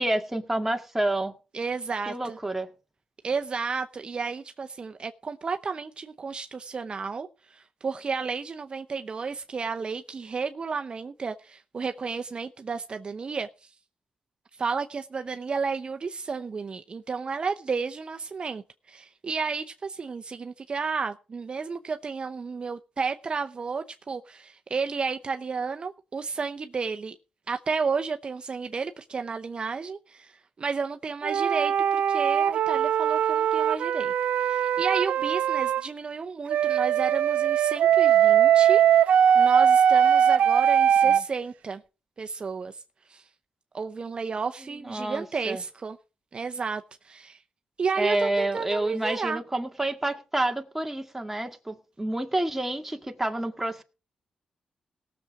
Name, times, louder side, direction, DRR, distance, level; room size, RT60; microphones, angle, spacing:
voice 1, 0.0-1.3 2.1-2.7 41.0-41.2 44.8-45.6 48.0-53.8, right 1 dB, 10° right, 1.9 m, -29 dB
voice 2, 1.5-2.4 3.2-13.7 14.5-27.2 27.5-34.1 34.4-41.8 42.2-43.3 43.7-46.0 46.3-47.4 47.8-49.4, right 5 dB, 45° right, 0.7 m, -32 dB
sound 1, 31.2-35.8 36.5-41.2, right 9 dB, 85° right, 0.6 m, -21 dB
18.0 x 7.0 x 4.8 m
cardioid pair, 90°, 2 cm